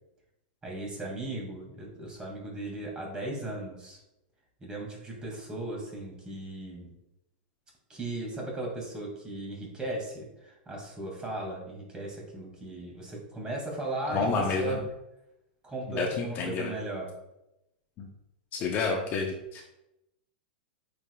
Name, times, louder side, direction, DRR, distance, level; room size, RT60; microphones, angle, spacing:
voice 1, 0.6-4.0 4.6-6.9 7.9-14.8 15.6-17.1, right 2 dB, 15° right, -1 dB, 2.2 m, -37 dB
voice 2, 14.1-14.8 15.9-16.7 18.0-18.1 18.5-19.6, left 4 dB, 35° left, 1 dB, 1.0 m, -29 dB
8.6 x 5.2 x 2.4 m, 0.88 s
hypercardioid pair, 135°, 6 cm